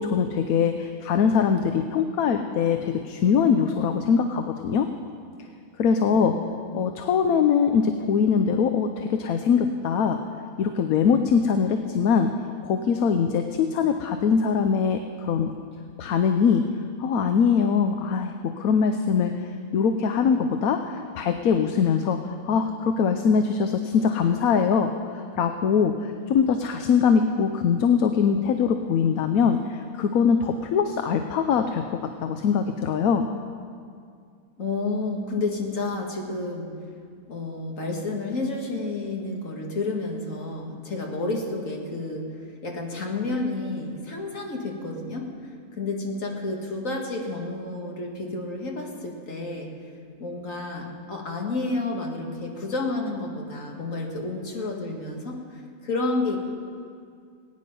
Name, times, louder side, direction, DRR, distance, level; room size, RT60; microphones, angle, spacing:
voice 1, 0.0-4.9 5.8-6.4 6.7-10.2 10.6-12.3 12.6-15.5 16.0-16.6 17.0-33.3, left 6 dB, 80° left, 7 dB, 1.1 m, -22 dB
voice 2, 6.1-6.9 34.6-36.9 37.3-49.9 50.2-56.4, left 2 dB, 65° left, 0 dB, 2.2 m, -30 dB
20.0 x 9.6 x 5.4 m, 2.2 s
omnidirectional pair, 1.5 m